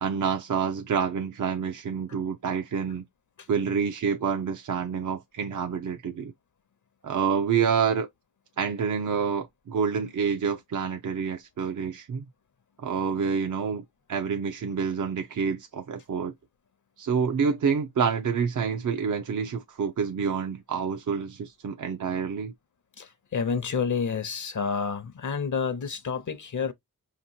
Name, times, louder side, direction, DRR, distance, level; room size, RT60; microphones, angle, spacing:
voice 1, 0.0-3.1 3.5-6.3 7.0-8.1 8.6-12.2 12.8-13.8 14.1-16.3 17.0-22.5, right 6 dB, 55° right, 0.5 m, -28 dB
voice 2, 23.0-26.7, left 5 dB, 55° left, 0.7 m, -29 dB
5.6 x 2.9 x 2.7 m
wide cardioid pair, 90°, 36 cm